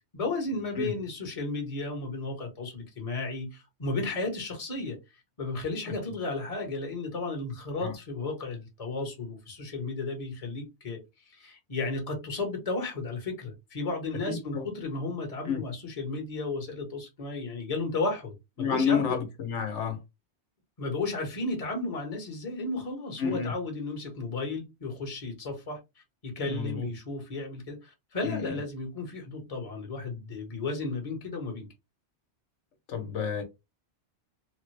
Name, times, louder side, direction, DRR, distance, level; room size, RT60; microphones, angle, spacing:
voice 1, 0.1-5.0 5.4-11.0 11.4-19.2 20.8-31.7, left 3 dB, 35° left, 1.0 m, -34 dB
voice 2, 14.1-14.7 15.4-15.6 18.6-20.0 23.2-23.5 26.5-26.9 28.2-28.6 32.9-33.4, left 6 dB, 85° left, 1.2 m, -30 dB
3.4 x 2.1 x 3.2 m
omnidirectional pair, 1.2 m